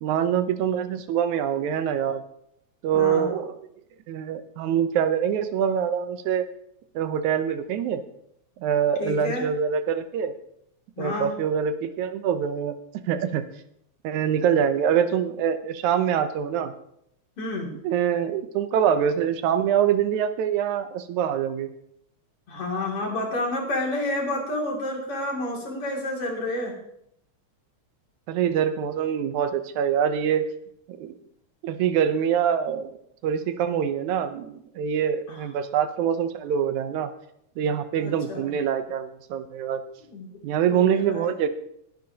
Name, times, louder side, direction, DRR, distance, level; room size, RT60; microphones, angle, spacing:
voice 1, 0.0-2.2 2.8-3.6 4.1-6.4 7.0-8.0 8.6-10.3 11.0-12.7 13.1-13.4 14.0-16.7 17.8-21.7 28.3-30.5 30.9-31.2 31.6-33.0 33.2-37.1 37.6-39.8 40.4-41.5, right 8 dB, 85° right, 10 dB, 2.3 m, -24 dB
voice 2, 2.9-3.3 9.0-9.5 11.0-11.3 17.4-17.7 22.5-26.7 35.3-35.4 38.0-38.5 40.1-40.3 40.7-41.3, left 2 dB, 50° left, 0 dB, 3.6 m, -29 dB
20.5 x 10.5 x 2.9 m, 0.74 s
omnidirectional pair, 3.3 m